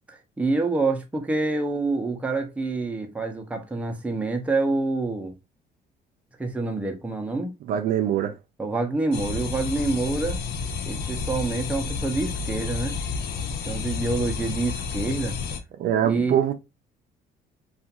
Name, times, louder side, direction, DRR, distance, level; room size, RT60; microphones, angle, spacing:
voice 1, 0.1-5.3 6.4-7.5 8.6-10.4 10.8-13.0 13.6-15.4 16.0-16.4, right 3 dB, 10° right, 0.5 m, -27 dB
voice 2, 7.7-8.4 15.8-16.5, right 10 dB, 60° right, 0.4 m, -23 dB
sound 1, 9.1-15.6, left 5 dB, 75° left, 0.5 m, -30 dB
2.4 x 2.3 x 2.7 m
cardioid pair, 110°, 17 cm